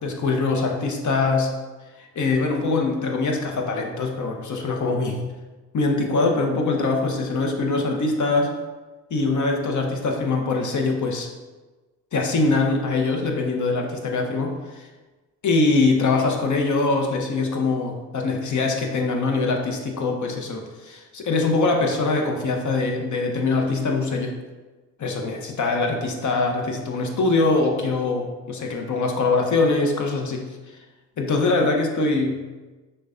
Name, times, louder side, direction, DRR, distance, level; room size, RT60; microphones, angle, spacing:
voice 1, 0.0-1.5 2.0-5.2 5.7-8.5 9.1-11.3 12.1-14.9 15.4-24.3 25.0-30.4 31.2-32.4, left 3 dB, 45° left, 2 dB, 0.8 m, -23 dB
6.1 x 2.2 x 2.5 m, 1.2 s
supercardioid pair, 60°, 42 cm